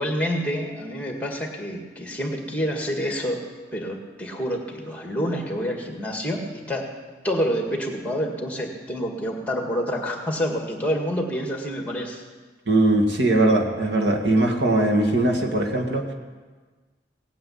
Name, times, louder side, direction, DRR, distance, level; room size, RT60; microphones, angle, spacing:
voice 1, 0.0-3.4 3.7-6.9 7.2-12.2, equal, 10° left, 2 dB, 1.8 m, -28 dB
voice 2, 12.7-16.1, right 2 dB, 80° right, 1 dB, 2.0 m, -20 dB
17.5 x 9.5 x 8.5 m, 1.4 s
head